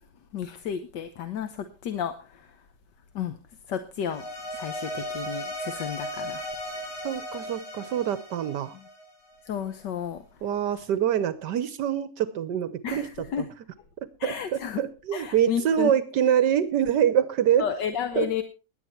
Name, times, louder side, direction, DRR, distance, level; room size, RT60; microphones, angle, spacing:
voice 1, 0.3-2.1 3.1-3.4 3.7-4.2 4.5-6.4 9.5-10.2 12.8-13.5 14.2-14.8 15.1-15.9 17.6-18.4, left 8 dB, 80° left, 9 dB, 1.7 m, -32 dB
sound 1, 4.1-9.4, equal, 15° left, 7.3 m, -36 dB
voice 2, 7.0-8.7 10.4-13.5 14.2-17.6 18.2-18.4, right 9 dB, 75° right, 14 dB, 1.4 m, -25 dB
17.5 x 11.0 x 4.3 m, 0.33 s
omnidirectional pair, 1.9 m